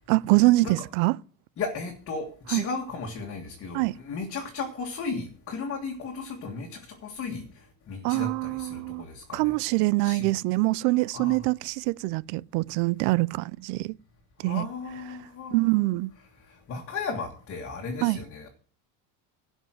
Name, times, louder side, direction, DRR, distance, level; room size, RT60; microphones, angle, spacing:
voice 1, 0.1-1.1 2.5-2.6 3.7-3.9 8.0-9.0 9.3-13.9 14.4-14.7 15.5-16.1 18.0-18.2, right 22 dB, 85° right, 0.5 m, -24 dB
voice 2, 1.6-9.5 10.0-10.3 11.1-11.5 14.4-15.8 16.5-18.5, left 4 dB, 35° left, 1.8 m, -35 dB
12.0 x 5.4 x 7.7 m
cardioid pair, 155°, 40 cm